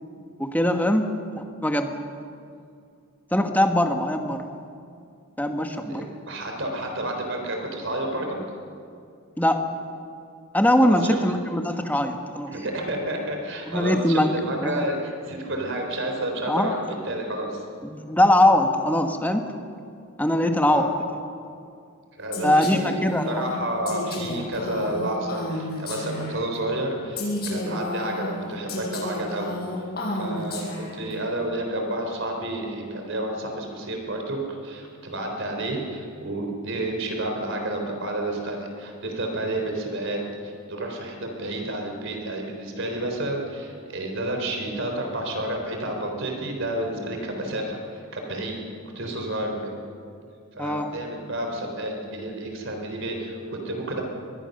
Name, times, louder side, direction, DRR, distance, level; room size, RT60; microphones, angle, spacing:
voice 1, 0.4-1.9 3.3-4.5 5.4-6.1 9.4-9.7 10.5-12.5 13.7-14.3 14.6-14.8 16.5-16.8 17.8-19.4 20.2-20.9 22.4-23.3 50.6-50.9, left 1 dB, 5° left, 5 dB, 1.4 m, -22 dB
voice 2, 5.9-8.4 10.8-11.2 12.5-17.6 20.7-20.9 22.1-29.5 30.1-48.6 48.9-49.8 50.5-54.0, right 1 dB, 55° right, 2 dB, 4.0 m, -30 dB
Female speech woman speaking, 22.3-26.6 27.2-31.1, left 1 dB, 45° left, 7.6 m, -32 dB
25.5 x 21.5 x 6.7 m, 2.4 s
head